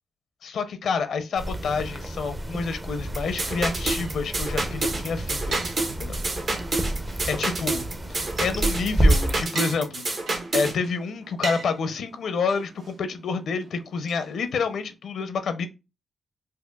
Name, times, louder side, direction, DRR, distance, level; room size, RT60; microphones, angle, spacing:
voice 1, 0.4-5.6 6.0-6.2 7.3-7.8 8.1-10.0 10.5-15.7, left 5 dB, 75° left, 0.5 m, -28 dB
sound 1, 1.3-9.4, right 1 dB, 20° right, 0.6 m, -28 dB
sound 2, 3.1-10.8, right 2 dB, 55° right, 1.2 m, -28 dB
sound 3, 3.3-14.9, right 3 dB, 75° right, 1.0 m, -42 dB
4.6 x 2.5 x 2.2 m
cardioid pair, 100°, 0 cm